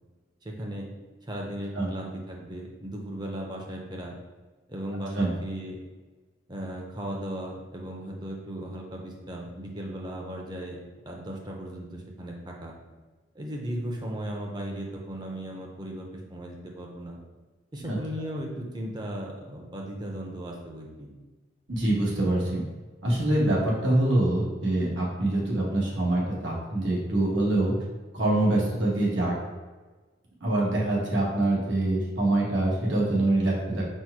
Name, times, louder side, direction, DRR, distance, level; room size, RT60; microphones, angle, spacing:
voice 1, 0.4-0.9 1.3-4.2 4.7-5.8 6.5-10.8 11.1-12.8 13.3-17.2 17.7-21.1, right 1 dB, 25° right, 0 dB, 0.6 m, -36 dB
voice 2, 21.7-22.7 23.0-27.7 28.1-29.4 30.4-33.8, right 1 dB, 85° right, -4 dB, 1.2 m, -25 dB
4.4 x 2.1 x 4.6 m, 1.3 s
head